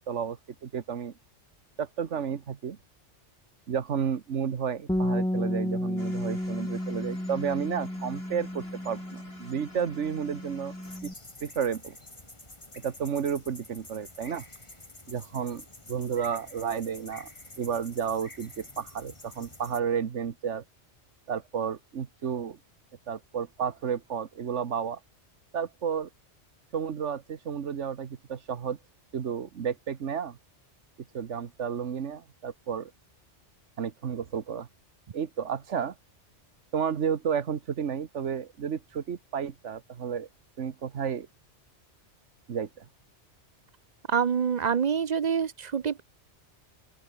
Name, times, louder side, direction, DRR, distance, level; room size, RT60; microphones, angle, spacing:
voice 1, 0.1-1.1 1.8-2.8 3.7-10.7 11.0-11.1 11.4-12.0 12.8-14.4 15.1-17.3 17.6-20.6 21.3-22.6 23.1-25.0 25.5-26.1 26.7-28.8 29.1-30.4 31.1-32.9 33.8-34.7 35.1-35.9 36.7-40.3 40.6-41.3 42.5-42.8, right 7 dB, 80° right, 1.5 m, -32 dB
Bass guitar, 4.9-11.1, left 1 dB, 5° left, 1.0 m, -32 dB
sound 1, 6.0-11.0, left 1 dB, 60° left, 6.3 m, -50 dB
sound 2, 10.8-19.8, left 2 dB, 25° left, 2.8 m, -48 dB
voice 2, 44.1-46.0, right 7 dB, 45° right, 0.6 m, -26 dB
open air
omnidirectional pair, 1.2 m